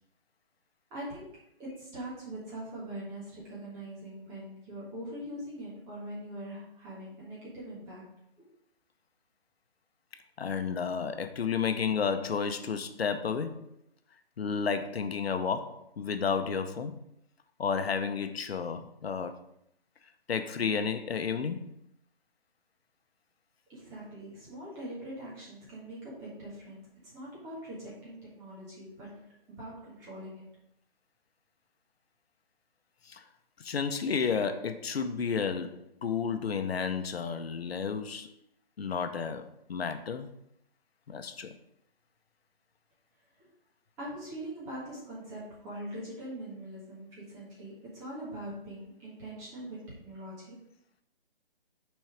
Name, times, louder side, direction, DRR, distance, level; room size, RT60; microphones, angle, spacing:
voice 1, 0.9-8.5 23.7-29.2 29.6-30.5 43.4-43.5 44.0-50.6, right 1 dB, 10° right, 1.5 m, -42 dB
voice 2, 10.4-13.7 14.4-17.0 17.6-19.4 20.3-21.7 33.1-33.2 33.6-38.3 38.8-40.3 41.1-41.5, left 6 dB, 80° left, 0.8 m, -32 dB
6.2 x 4.5 x 4.9 m
hypercardioid pair, 170°, 30 cm